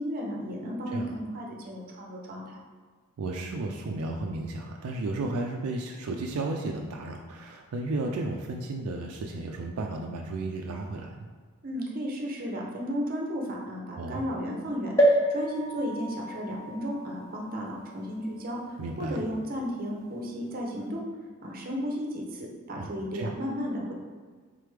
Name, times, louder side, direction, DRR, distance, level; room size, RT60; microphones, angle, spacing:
voice 1, 0.0-2.6 11.6-18.6 19.0-21.0 21.4-23.9, equal, 40° right, -1 dB, 0.7 m, -34 dB
voice 2, 3.2-11.3 13.9-14.2 18.8-19.2 22.7-23.3, right 2 dB, 75° right, 2 dB, 0.3 m, -33 dB
sound 1, 15.0-18.6 19.2-19.3 19.5-19.6, right 1 dB, 15° left, 0.5 m, -28 dB
3.7 x 3.3 x 3.2 m, 1.5 s
head